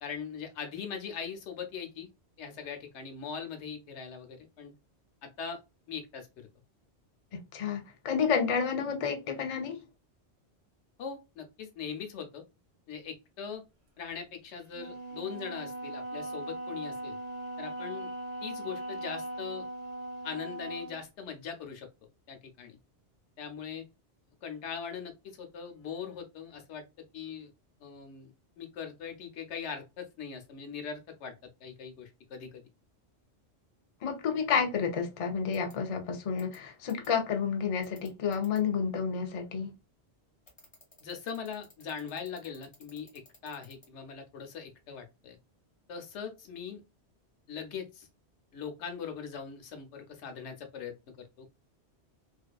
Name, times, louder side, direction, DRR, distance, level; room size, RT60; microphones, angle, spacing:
voice 1, 0.0-2.1 2.4-4.7 5.2-5.6 5.9-6.5 11.0-12.4 12.9-13.6 14.0-17.2 17.6-18.1 18.4-19.7 20.2-21.9 22.3-22.8 23.4-23.8 24.4-26.8 27.1-27.5 27.8-28.3 28.6-32.7 41.0-45.4 45.9-46.8 47.5-48.1 48.5-51.5, left 6 dB, 85° left, 1.0 m, -41 dB
voice 2, 7.3-9.8 34.0-39.7, left 6 dB, 50° left, 0.4 m, -30 dB
Wind instrument woodwind instrument, 14.7-21.0, right 1 dB, 70° right, 0.9 m, -39 dB
sound 1, 35.5-35.7 36.4-36.6 36.9-37.1 37.8-38.6 40.5-43.9, left 1 dB, 25° left, 1.2 m, -55 dB
2.6 x 2.4 x 2.2 m
omnidirectional pair, 1.1 m